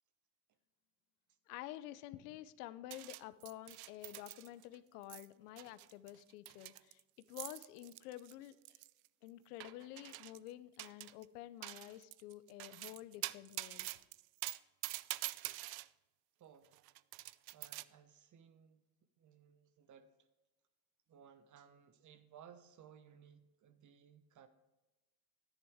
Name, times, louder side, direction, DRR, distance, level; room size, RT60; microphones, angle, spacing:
voice 1, 1.5-7.0 7.3-8.8 9.2-13.9, left 14 dB, 75° left, 15 dB, 0.7 m, -50 dB
sound 1, 2.9-4.8 5.0-5.3 5.6-9.1 9.6-10.5 10.8-11.2 11.6-15.9 16.6-17.8, right 20 dB, 55° right, 0.5 m, -46 dB
voice 2, 16.4-16.7 17.5-18.8 19.2-20.3 21.1-24.5, right 8 dB, 40° right, 11 dB, 1.1 m, -61 dB
11.0 x 10.0 x 3.6 m, 1.1 s
hypercardioid pair, 90°, 46 cm